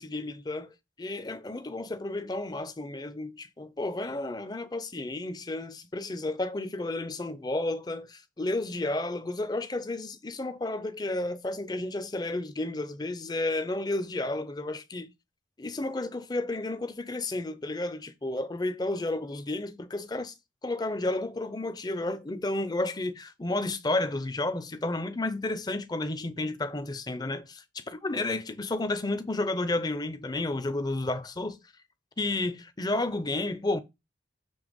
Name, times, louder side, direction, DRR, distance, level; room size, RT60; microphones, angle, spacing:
voice 1, 0.0-15.1 15.6-20.3 20.6-31.6 32.2-33.8, left 2 dB, 20° left, 0.5 m, -32 dB
7.0 x 3.3 x 5.2 m
head